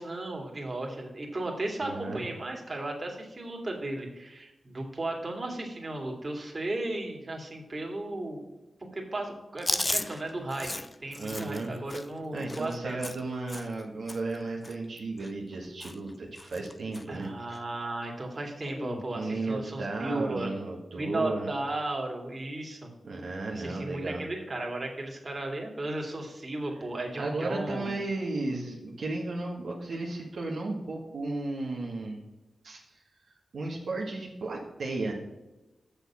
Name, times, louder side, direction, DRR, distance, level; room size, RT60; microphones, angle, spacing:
voice 1, 0.0-8.4 8.9-10.7 11.0-13.0 17.1-20.5 20.9-22.9 23.5-27.9, right 2 dB, 40° right, 1 dB, 2.3 m, -35 dB
voice 2, 1.8-2.2 11.2-11.8 12.3-17.3 19.1-21.5 23.0-24.2 27.2-32.2 32.6-33.0 33.5-35.1, right 2 dB, 75° right, -2 dB, 1.5 m, -34 dB
Chewing mastication, 9.6-13.8 14.1-14.4 14.6-15.5 15.8-16.1 16.4-17.0 17.5-17.6 18.7-19.1, left 2 dB, 20° left, 0.6 m, -35 dB
6.8 x 6.4 x 7.0 m, 1.0 s
cardioid pair, 65°, 0 cm